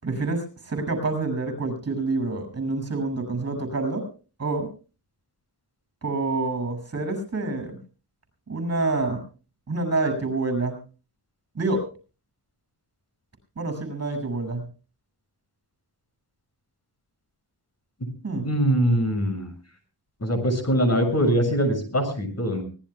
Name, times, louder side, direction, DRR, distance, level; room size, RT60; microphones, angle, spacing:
voice 1, 0.0-4.1 4.4-4.7 6.0-7.8 8.5-9.2 9.7-10.8 11.6-11.8 13.6-14.6 18.2-18.5, right 3 dB, 40° right, 8 dB, 6.9 m, -27 dB
voice 2, 18.4-19.5 20.2-22.6, equal, 40° left, 5 dB, 7.1 m, -22 dB
24.5 x 18.5 x 2.3 m, 0.36 s
wide cardioid pair, 90°, 40 cm